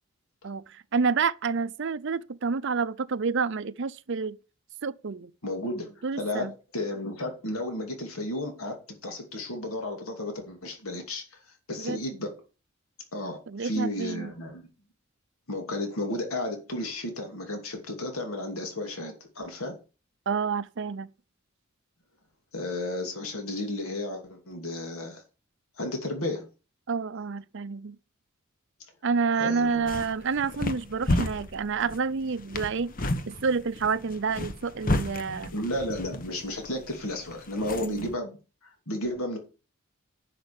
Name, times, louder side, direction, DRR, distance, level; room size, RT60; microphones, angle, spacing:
voice 1, 0.4-4.4 4.8-5.3 6.0-6.5 11.8-12.0 13.5-14.3 20.3-21.1 26.9-28.0 29.0-32.9 33.3-35.5 37.8-38.1, right 5 dB, 60° right, 0.6 m, -29 dB
voice 2, 5.4-6.5 6.7-8.7 9.0-11.2 11.7-12.3 13.1-14.7 15.5-19.7 22.5-25.2 25.8-26.5 29.4-29.9 35.5-38.4 38.9-39.4, left 1 dB, 85° left, 2.7 m, -33 dB
sound 1, 29.6-38.1, left 1 dB, 40° left, 1.0 m, -33 dB
11.0 x 5.8 x 7.0 m
head